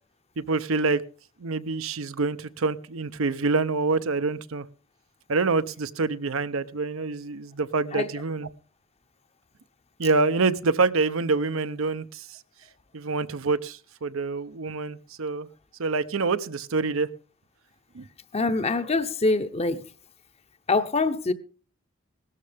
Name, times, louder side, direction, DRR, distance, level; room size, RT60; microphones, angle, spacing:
voice 1, 0.4-1.0 1.4-4.7 5.3-8.5 10.0-12.3 12.9-15.5 15.8-17.1 17.9-18.0, right 3 dB, 75° right, 0.7 m, -26 dB
voice 2, 18.3-19.8 20.7-21.3, left 3 dB, 30° left, 0.8 m, -24 dB
17.5 x 13.0 x 3.5 m
head